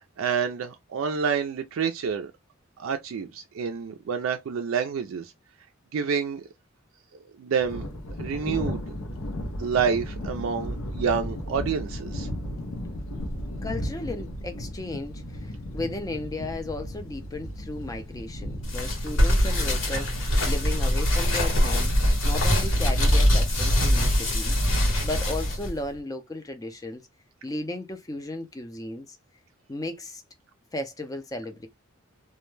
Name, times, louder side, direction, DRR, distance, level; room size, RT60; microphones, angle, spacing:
voice 1, 0.2-2.3 2.8-5.3 5.9-6.5 7.4-7.9 8.2-8.8 9.6-12.3, right 6 dB, 70° right, 0.3 m, -28 dB
Thunder, 7.6-26.0, equal, 85° left, 0.6 m, -35 dB
voice 2, 13.6-21.9 22.2-24.6 25.0-27.0 27.4-29.2 29.7-30.2 30.7-31.7, left 2 dB, 15° left, 0.4 m, -35 dB
sound 1, 18.6-25.7, equal, 65° left, 1.0 m, -23 dB
2.2 x 2.1 x 3.1 m
head